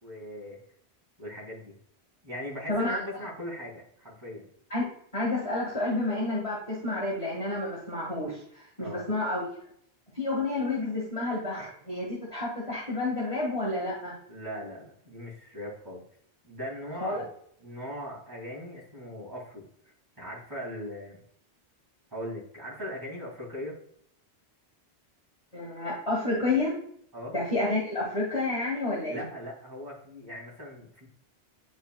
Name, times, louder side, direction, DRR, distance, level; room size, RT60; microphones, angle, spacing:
voice 1, 0.0-0.6 1.2-1.8 2.2-4.5 8.8-9.0 14.3-16.0 16.4-17.3 17.6-21.2 22.1-23.8 27.1-27.3 29.1-31.1, equal, 20° right, -6 dB, 2.6 m, -39 dB
voice 2, 5.1-9.4 10.1-14.1 17.0-17.2 25.5-26.8 27.3-29.2, left 2 dB, 30° left, -6 dB, 1.7 m, -30 dB
10.0 x 4.2 x 2.3 m, 0.65 s
omnidirectional pair, 1.1 m